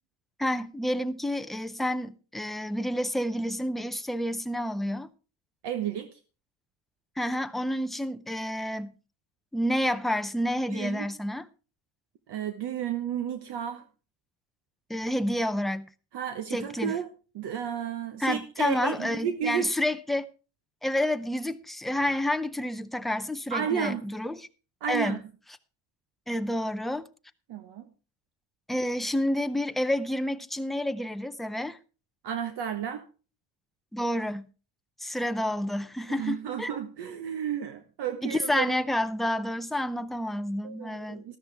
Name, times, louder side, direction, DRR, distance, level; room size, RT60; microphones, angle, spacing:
voice 1, 0.4-5.1 7.2-8.9 9.5-11.5 14.9-15.9 16.5-17.0 18.2-20.3 20.8-24.5 24.9-25.2 26.3-27.1 28.7-31.8 33.9-34.5 35.0-36.7 38.2-41.2, left 1 dB, ahead, 0.5 m, -29 dB
voice 2, 5.6-6.1 10.7-11.1 12.3-13.8 16.1-17.1 17.3-19.7 23.5-24.0 24.8-25.2 27.5-27.9 32.2-33.0 36.1-38.7 40.6-41.4, right 9 dB, 55° right, 1.3 m, -32 dB
13.5 x 13.0 x 3.4 m
cardioid pair, 125°, 47 cm